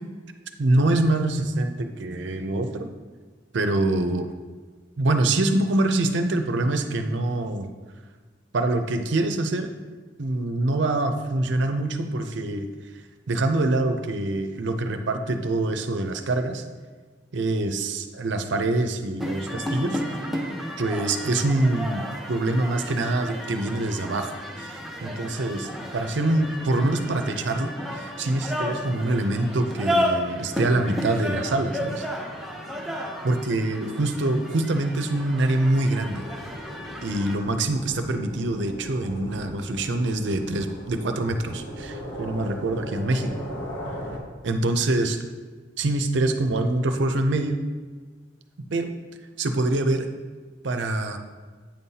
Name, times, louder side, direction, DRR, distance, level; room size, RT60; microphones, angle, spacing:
voice 1, 0.6-2.9 3.5-4.3 5.0-7.7 8.5-9.7 10.2-12.7 13.3-16.6 17.3-20.0 20.8-32.1 33.2-36.3 37.0-43.3 44.4-45.2 45.8-47.6 48.7-48.9 49.4-50.1 50.6-51.2, right 2 dB, 60° right, 7 dB, 0.5 m, -25 dB
sound 1, 19.2-37.4, equal, ahead, 0.6 m, -32 dB
sound 2, 36.0-44.2, equal, 75° left, 1.5 m, -38 dB
8.7 x 5.5 x 2.8 m, 1.4 s
head